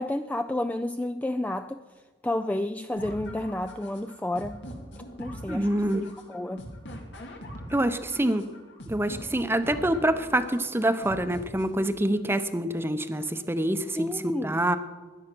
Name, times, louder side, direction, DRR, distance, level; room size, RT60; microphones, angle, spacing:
voice 1, 0.0-1.8 2.2-4.6 5.2-6.7 13.9-14.6, left 1 dB, 10° left, 9 dB, 0.4 m, -31 dB
sound 1, 3.0-12.0, equal, 80° left, 2.5 m, -42 dB
voice 2, 5.5-6.0 7.7-8.4 8.9-14.1 14.4-14.8, right 1 dB, 15° right, 10 dB, 0.8 m, -26 dB
16.5 x 11.0 x 6.1 m, 1.4 s
head